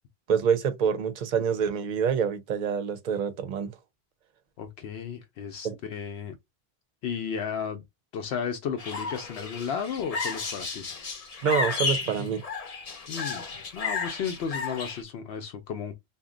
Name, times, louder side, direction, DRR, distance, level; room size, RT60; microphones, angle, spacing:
voice 1, 0.3-3.7 5.6-5.8 11.4-12.4, right 7 dB, 55° right, 0.6 m, -26 dB
voice 2, 4.6-6.3 7.0-7.8 8.1-10.9 13.1-15.9, left 7 dB, 85° left, 0.8 m, -34 dB
sound 1, 8.8-15.0, left 4 dB, 45° left, 0.6 m, -33 dB
2.6 x 2.1 x 3.7 m
omnidirectional pair, 1.0 m